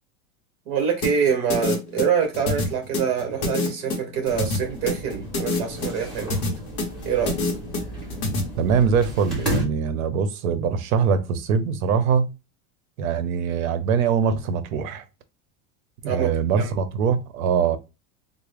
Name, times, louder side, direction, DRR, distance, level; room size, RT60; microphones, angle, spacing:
voice 1, 0.7-6.4 7.0-7.4 16.0-16.3 16.6-16.7, right 7 dB, 45° right, 1.2 m, -25 dB
sound 1, 1.0-8.4, left 2 dB, 25° left, 0.8 m, -26 dB
sound 2, 4.2-9.6, right 1 dB, ahead, 1.3 m, -33 dB
voice 2, 8.6-12.3 13.0-15.0 16.0-17.8, right 6 dB, 80° right, 0.7 m, -22 dB
3.6 x 2.1 x 3.3 m
supercardioid pair, 175°, 41 cm